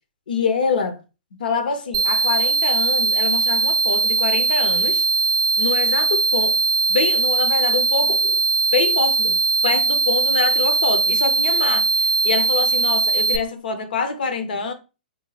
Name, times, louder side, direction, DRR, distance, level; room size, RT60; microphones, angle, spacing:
voice 1, 0.3-1.0 1.4-5.1 5.6-6.6 6.9-8.4 8.7-14.7, left 5 dB, 75° left, 0.7 m, -25 dB
sound 1, 1.9-13.4, right 4 dB, 40° right, 0.4 m, -20 dB
3.6 x 2.2 x 3.2 m
hypercardioid pair, 125°, 5 cm